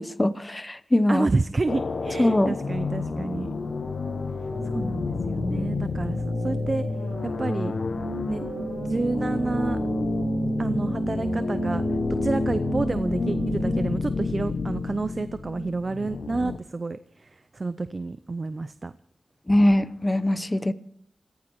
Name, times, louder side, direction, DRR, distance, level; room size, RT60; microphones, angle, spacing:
voice 1, 0.0-1.3 2.2-2.5 19.5-20.7, left 1 dB, 25° left, 15 dB, 1.0 m, -22 dB
voice 2, 1.1-3.5 4.6-6.9 7.2-7.8 8.3-8.4 8.8-9.8 10.6-11.8 12.1-18.9, right 3 dB, 50° right, 13 dB, 0.6 m, -29 dB
sound 1, 1.7-16.6, left 4 dB, 70° left, 0.8 m, -30 dB
sound 2, 2.2-14.0, right 2 dB, 85° right, 3.9 m, -32 dB
26.5 x 15.0 x 3.2 m, 0.65 s
cardioid pair, 45°, 0 cm